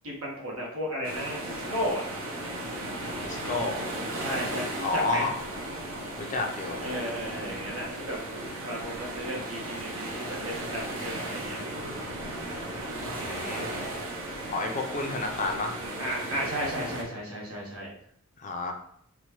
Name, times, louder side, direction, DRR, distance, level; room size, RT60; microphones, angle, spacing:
voice 1, 0.0-2.0 4.2-5.3 6.8-10.1 10.4-11.6 16.0-17.9, equal, 85° right, -3 dB, 1.2 m, -34 dB
sound 1, 1.0-17.0, right 1 dB, 70° right, 0.7 m, -35 dB
voice 2, 3.2-3.8 4.8-5.3 6.2-6.8 13.1-13.7 14.5-15.8 18.4-18.7, left 3 dB, 35° left, 3 dB, 0.4 m, -30 dB
4.2 x 2.2 x 3.0 m, 0.67 s
head